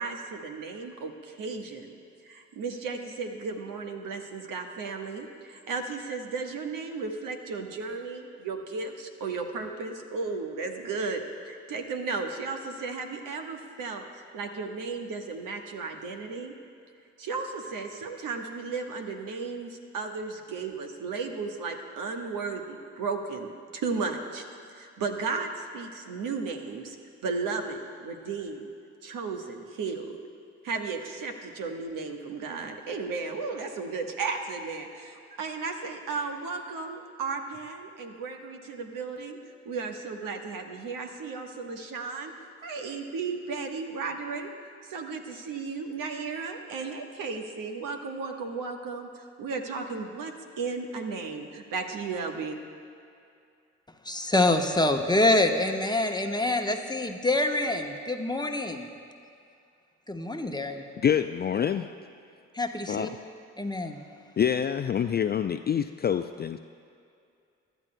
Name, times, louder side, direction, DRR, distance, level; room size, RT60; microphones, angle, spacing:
voice 1, 0.0-1.9 2.3-16.5 17.2-24.4 24.8-27.0 27.2-28.7 29.0-30.2 30.6-39.4 39.6-42.3 42.6-44.5 44.9-52.6, right 4 dB, 65° right, 3 dB, 1.3 m, -34 dB
voice 2, 54.0-58.9 60.1-60.8 62.5-63.1 63.6-64.0, left 2 dB, 10° left, 4 dB, 1.0 m, -26 dB
voice 3, 61.0-61.9 62.9-63.2 64.4-66.6, left 8 dB, 30° left, 9 dB, 0.4 m, -26 dB
24.0 x 12.0 x 2.2 m, 2.4 s
hypercardioid pair, 40°, 36 cm